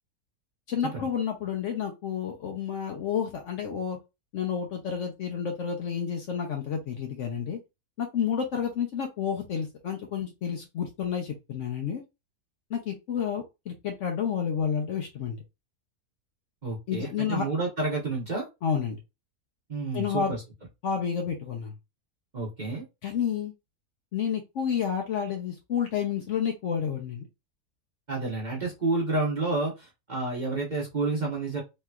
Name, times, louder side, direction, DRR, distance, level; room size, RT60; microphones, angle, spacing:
voice 1, 0.7-4.0 4.3-7.6 8.0-12.0 12.7-15.4 16.9-17.4 18.6-19.0 19.9-20.3 20.8-21.7 23.0-23.5 24.1-27.3, left 7 dB, 65° left, 2 dB, 0.8 m, -30 dB
voice 2, 16.6-18.5 19.7-20.4 22.3-22.8 28.1-31.6, right 3 dB, 35° right, -3 dB, 0.9 m, -30 dB
3.2 x 2.8 x 2.3 m, 0.24 s
omnidirectional pair, 1.6 m